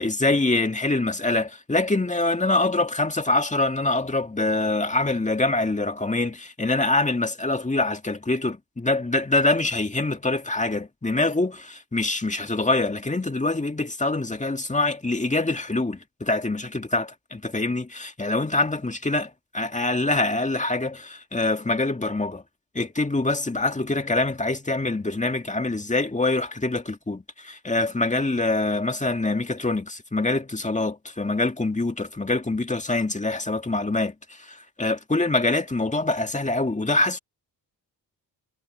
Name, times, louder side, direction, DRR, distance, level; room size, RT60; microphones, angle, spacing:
voice 1, 0.0-22.4 22.7-37.2, left 2 dB, 15° left, 2.1 m, -25 dB
cardioid pair, 60°, 42 cm